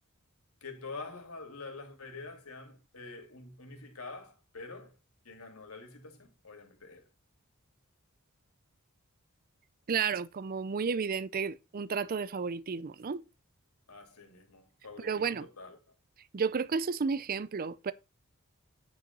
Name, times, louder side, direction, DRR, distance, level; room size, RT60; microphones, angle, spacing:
voice 1, 0.6-4.9 5.2-7.1 13.9-15.9, left 3 dB, 80° left, 2.8 m, -46 dB
voice 2, 9.9-13.2 15.0-15.5 16.3-17.9, right 5 dB, 40° right, 0.4 m, -32 dB
9.5 x 5.2 x 5.3 m
head